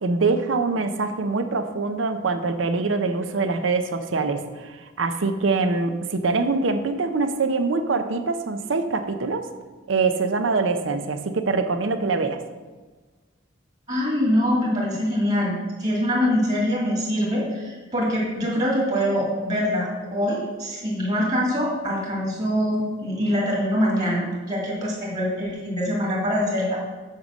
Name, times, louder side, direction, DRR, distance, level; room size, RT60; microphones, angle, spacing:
voice 1, 0.0-9.4 9.9-12.4, right 4 dB, 75° right, 9 dB, 0.6 m, -24 dB
voice 2, 13.9-26.8, equal, 35° right, -3 dB, 2.2 m, -24 dB
8.2 x 5.3 x 6.2 m, 1.3 s
head